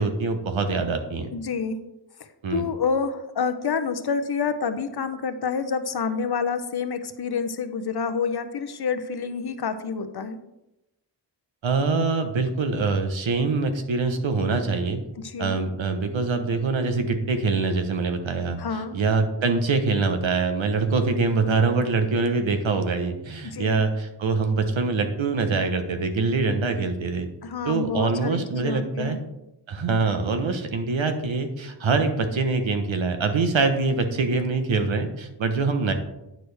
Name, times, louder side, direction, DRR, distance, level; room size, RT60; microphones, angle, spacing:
voice 1, 0.0-1.3 2.4-2.7 11.6-15.0 15.4-27.3 27.6-29.2 29.7-35.9, right 4 dB, 85° right, 7 dB, 1.0 m, -24 dB
voice 2, 1.3-1.8 2.5-10.4 15.2-15.6 18.6-19.0 23.4-23.8 27.4-29.2, left 5 dB, 55° left, 10 dB, 0.7 m, -28 dB
9.2 x 6.2 x 3.3 m, 0.92 s
wide cardioid pair, 120°, 45 cm